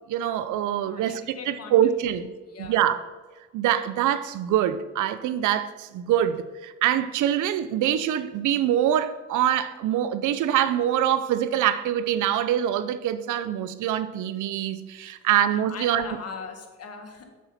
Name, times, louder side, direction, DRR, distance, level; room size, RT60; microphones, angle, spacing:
voice 1, 0.1-2.3 2.6-3.0 3.5-16.1, right 11 dB, 80° right, 0.6 m, -24 dB
voice 2, 0.9-1.8 2.5-2.9 15.7-17.2, left 5 dB, 55° left, 1.5 m, -39 dB
7.2 x 7.2 x 4.2 m
cardioid pair, 90°, 30 cm